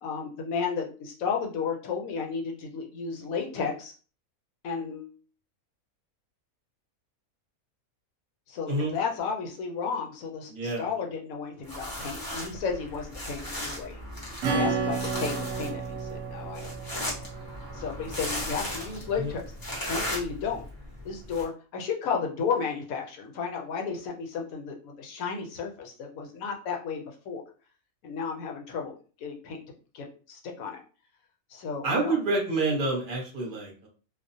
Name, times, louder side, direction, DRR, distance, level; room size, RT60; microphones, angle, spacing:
voice 1, 0.0-3.9 4.6-5.1 8.5-14.0 14.5-17.1 17.7-19.4 19.8-20.6 21.0-27.4 28.0-29.6 29.9-30.8 31.5-32.1, left 6 dB, 75° left, 2 dB, 1.0 m, -33 dB
voice 2, 10.5-10.9 19.2-19.3 31.8-33.9, right 2 dB, 45° right, -1 dB, 0.8 m, -28 dB
sound 1, 11.6-21.4, equal, 30° left, 0.4 m, -37 dB
Acoustic guitar / Strum, 14.4-18.7, right 5 dB, 70° right, 0.9 m, -32 dB
2.4 x 2.0 x 2.6 m, 0.38 s
omnidirectional pair, 1.5 m